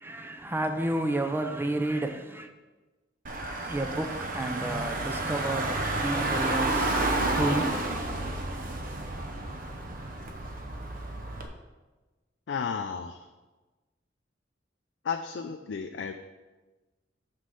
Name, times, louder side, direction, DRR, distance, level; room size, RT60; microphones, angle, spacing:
voice 1, 0.0-2.5 3.5-8.0, right 1 dB, 10° right, 0.5 m, -31 dB
Car / Engine, 3.3-11.5, right 2 dB, 45° right, 0.8 m, -30 dB
voice 2, 12.5-13.3 15.0-16.1, left 6 dB, 65° left, 0.4 m, -33 dB
6.1 x 5.4 x 5.6 m
head